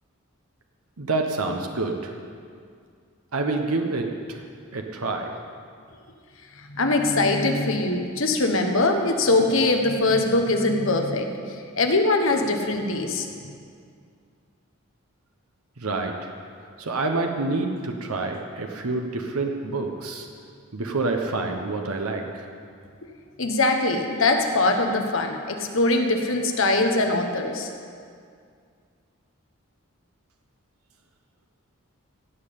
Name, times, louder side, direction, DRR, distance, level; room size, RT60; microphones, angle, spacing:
voice 1, 1.0-2.1 3.3-4.4 4.7-5.3 15.8-16.1 16.8-20.3 20.7-22.4, right 3 dB, 90° right, 3 dB, 1.1 m, -27 dB
voice 2, 6.6-11.3 11.8-13.3 23.4-27.7, left 2 dB, 65° left, 4 dB, 1.3 m, -22 dB
16.5 x 5.7 x 8.6 m, 2.2 s
head